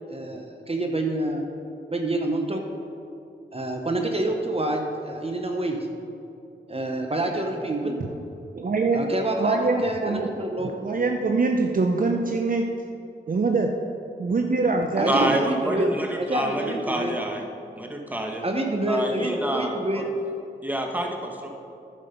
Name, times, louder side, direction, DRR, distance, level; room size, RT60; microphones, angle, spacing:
voice 1, 0.1-1.5 1.9-2.6 3.5-5.8 6.7-8.0 8.9-10.7 15.0-17.2 18.4-20.1, right 1 dB, 30° right, 3 dB, 1.0 m, -27 dB
voice 2, 8.6-9.0 9.4-10.3 10.6-12.7 13.3-13.7 14.2-15.2, right 3 dB, 45° right, 3 dB, 0.7 m, -23 dB
voice 3, 15.1-17.4 17.8-18.4 18.9-20.1 20.6-21.5, right 1 dB, 10° right, 2 dB, 1.4 m, -28 dB
10.0 x 6.4 x 5.2 m, 2.6 s
cardioid pair, 45°, 19 cm